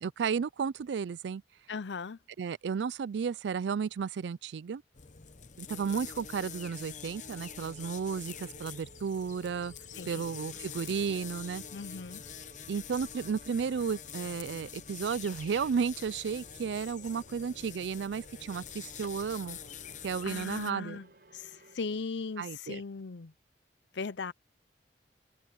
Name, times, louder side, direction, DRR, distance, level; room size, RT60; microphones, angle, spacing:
voice 1, 0.0-1.4 2.4-4.8 5.6-9.7 10.1-11.6 12.7-19.6 20.0-21.0 22.4-22.8, right 6 dB, 80° right, 0.4 m, -33 dB
voice 2, 1.7-2.2 10.0-10.2 11.7-12.2 20.2-21.1 21.3-23.3 23.9-24.3, left 4 dB, 90° left, 0.6 m, -38 dB
sound 1, 4.9-20.7, left 8 dB, 45° left, 0.8 m, -46 dB
sound 2, 7.2-21.8, right 2 dB, 60° right, 3.9 m, -59 dB
head